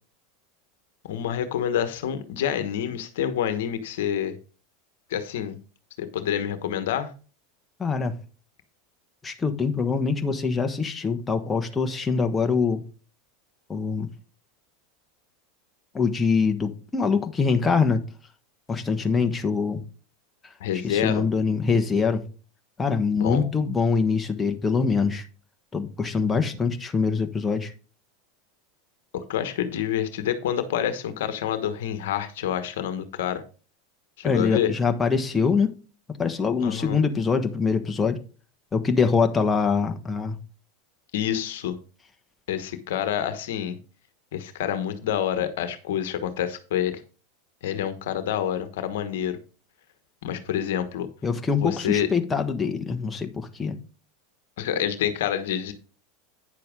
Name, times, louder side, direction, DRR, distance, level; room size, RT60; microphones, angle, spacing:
voice 1, 1.1-4.4 5.1-5.6 6.0-7.1 20.6-21.2 23.1-23.5 29.1-33.4 34.2-34.7 36.6-37.0 41.1-41.8 42.5-43.8 44.3-47.0 47.6-49.4 50.2-51.1 51.6-52.1 54.6-55.7, left 10 dB, 70° left, 1.2 m, -27 dB
voice 2, 7.8-8.2 9.2-12.8 13.7-14.1 15.9-18.0 18.7-19.8 20.8-22.2 22.8-25.2 25.7-27.7 34.2-35.8 36.2-38.2 38.7-40.4 51.2-53.8, left 5 dB, 15° left, 1.3 m, -24 dB
9.7 x 6.8 x 3.8 m
hypercardioid pair, 95°, 0 cm